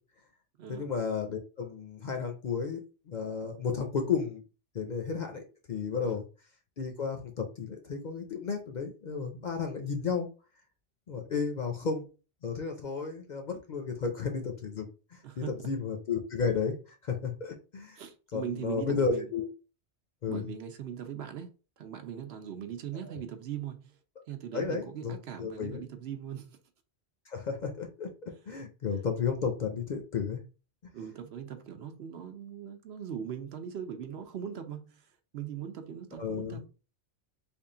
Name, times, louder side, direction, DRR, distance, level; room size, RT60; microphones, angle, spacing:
voice 1, 0.7-2.8 3.1-4.4 4.7-5.4 5.7-6.2 6.8-10.3 11.1-12.1 12.4-14.9 15.1-16.7 17.0-18.0 18.3-19.5 20.2-20.4 24.5-25.8 27.3-30.4 36.2-36.6, left 5 dB, 50° left, 0.6 m, -33 dB
voice 2, 15.2-15.6 18.0-19.3 20.3-24.0 24.3-26.6 28.5-28.6 30.9-35.1 35.3-36.6, right 8 dB, 70° right, 0.8 m, -40 dB
3.5 x 2.3 x 3.7 m
omnidirectional pair, 1.2 m